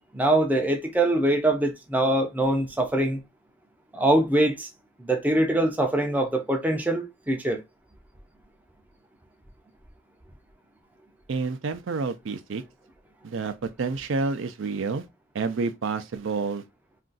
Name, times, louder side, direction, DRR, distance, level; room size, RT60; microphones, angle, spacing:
voice 1, 0.1-3.2 3.9-4.7 5.0-7.6, right 1 dB, 10° right, 0.4 m, -23 dB
voice 2, 11.3-12.6 13.2-15.0 15.3-16.6, right 4 dB, 75° right, 0.4 m, -29 dB
2.5 x 2.3 x 3.8 m
head